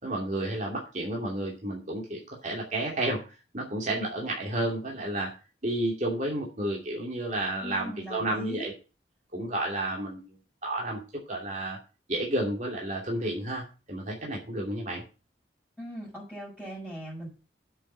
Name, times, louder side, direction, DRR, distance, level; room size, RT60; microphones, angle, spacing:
voice 1, 0.0-5.3 5.6-8.7 9.3-10.3 10.6-11.0 11.3-11.8 12.1-15.0, right 1 dB, 45° right, -2 dB, 2.7 m, -31 dB
voice 2, 7.6-8.7 15.8-17.3, equal, 10° right, -8 dB, 6.2 m, -39 dB
8.1 x 7.7 x 7.3 m, 0.33 s
head